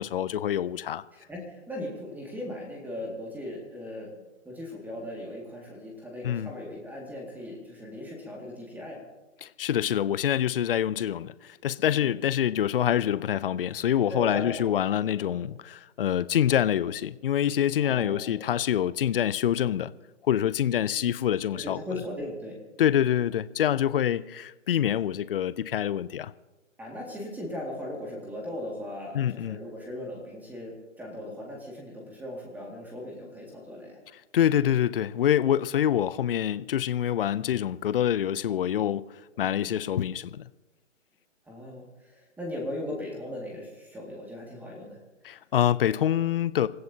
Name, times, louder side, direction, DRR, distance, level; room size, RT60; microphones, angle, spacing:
voice 1, 0.0-1.0 6.2-6.5 9.4-19.9 20.3-21.8 22.8-26.3 29.1-29.6 34.3-39.0 39.4-40.5 45.2-46.7, left 10 dB, 45° left, 0.5 m, -26 dB
voice 2, 1.1-4.1 4.4-9.0 14.1-15.4 17.8-18.4 21.5-22.6 26.8-34.0 39.4-39.7 41.5-45.0, left 1 dB, 5° right, 2.1 m, -38 dB
27.0 x 15.0 x 2.8 m
hypercardioid pair, 145°, 38 cm